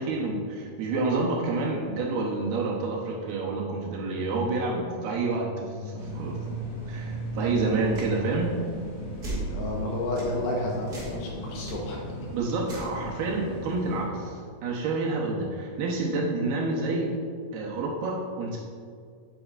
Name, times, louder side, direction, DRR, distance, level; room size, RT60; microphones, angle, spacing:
voice 1, 0.0-6.4 6.9-8.5 12.3-17.1 17.5-18.6, right 3 dB, 75° right, -2 dB, 2.5 m, -28 dB
sound 1, 5.1-9.9, right 2 dB, 90° left, 3.0 m, -37 dB
sound 2, 6.0-14.0, left 1 dB, 50° left, 3.1 m, -39 dB
sound 3, 7.9-8.1 9.2-9.5 10.2-10.3 10.9-11.2 11.6-11.7 12.6-12.9, right 2 dB, 40° right, 1.4 m, -35 dB
voice 2, 9.5-12.0, left 1 dB, 75° left, -2 dB, 2.7 m, -31 dB
8.5 x 8.2 x 2.4 m, 2.2 s
omnidirectional pair, 5.0 m